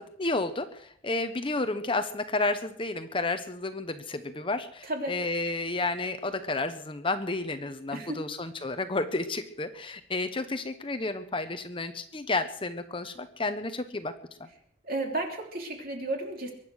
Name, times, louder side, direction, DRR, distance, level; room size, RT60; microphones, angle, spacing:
voice 1, 0.0-14.1 14.4-14.5, left 2 dB, 25° left, 9 dB, 0.9 m, -31 dB
voice 2, 4.8-5.1 7.9-8.2 14.8-16.5, right 2 dB, 45° right, 2 dB, 3.2 m, -33 dB
23.0 x 10.0 x 6.3 m, 0.66 s
head